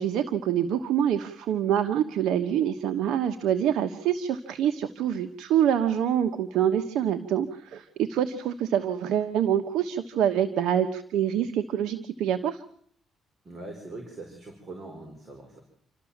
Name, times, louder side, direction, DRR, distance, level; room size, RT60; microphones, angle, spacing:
voice 1, 0.0-12.6, right 9 dB, 85° right, 9 dB, 1.2 m, -26 dB
voice 2, 13.4-15.6, right 2 dB, 40° right, 3 dB, 5.1 m, -42 dB
28.5 x 13.0 x 7.3 m, 0.62 s
cardioid pair, 90°, 0 cm